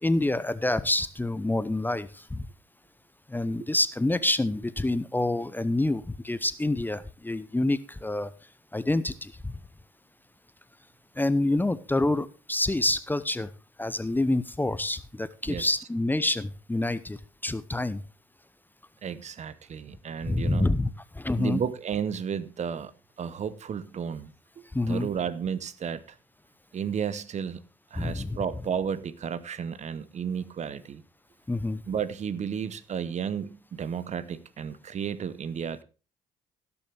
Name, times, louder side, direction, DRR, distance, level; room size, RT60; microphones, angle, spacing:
voice 1, 0.0-2.5 3.3-8.3 8.7-9.6 11.2-13.5 13.8-17.2 17.4-18.0 20.3-20.9 21.1-21.6 24.7-25.1 28.0-28.4 31.5-31.8, left 2 dB, 10° left, 0.7 m, -27 dB
voice 2, 19.0-20.7 21.4-22.9 23.2-24.3 24.9-26.0 26.7-27.6 27.9-31.0 31.9-35.8, right 7 dB, 45° right, 0.8 m, -32 dB
17.0 x 7.0 x 3.4 m
hypercardioid pair, 50°, 17 cm